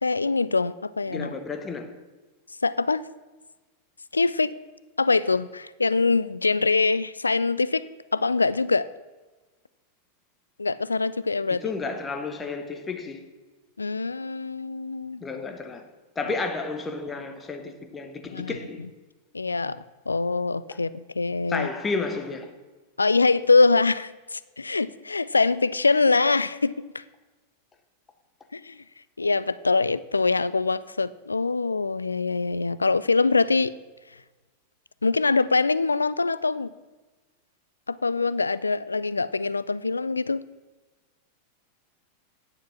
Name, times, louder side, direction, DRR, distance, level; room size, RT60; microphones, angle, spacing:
voice 1, 0.0-1.3 2.6-3.0 4.1-4.5 5.0-7.8 8.1-8.9 10.6-11.6 13.8-15.2 18.3-18.6 19.3-21.7 23.0-27.0 28.5-28.8 29.2-33.7 35.0-36.7 37.9-40.4, left 3 dB, 80° left, 0.3 m, -24 dB
voice 2, 1.1-1.9 11.6-13.2 15.2-15.9 16.1-18.8 21.5-22.5, left 4 dB, 20° left, 1.2 m, -32 dB
9.6 x 7.2 x 6.0 m
figure-of-eight pair, 90°, 0 cm